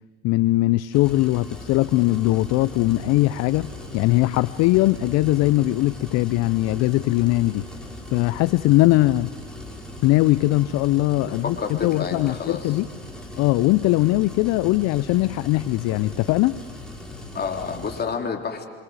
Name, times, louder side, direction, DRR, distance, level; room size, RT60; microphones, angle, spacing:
voice 1, 0.2-7.6 8.1-9.3 10.0-12.9 13.4-16.6, left 18 dB, 55° left, 16 dB, 0.7 m, -20 dB
sound 1, 0.9-18.0, left 1 dB, 5° left, 6.7 m, -39 dB
voice 2, 11.4-12.8 17.3-18.7, left 5 dB, 30° left, 3 dB, 3.7 m, -29 dB
26.0 x 25.5 x 8.0 m, 1.5 s
hypercardioid pair, 75°, 31 cm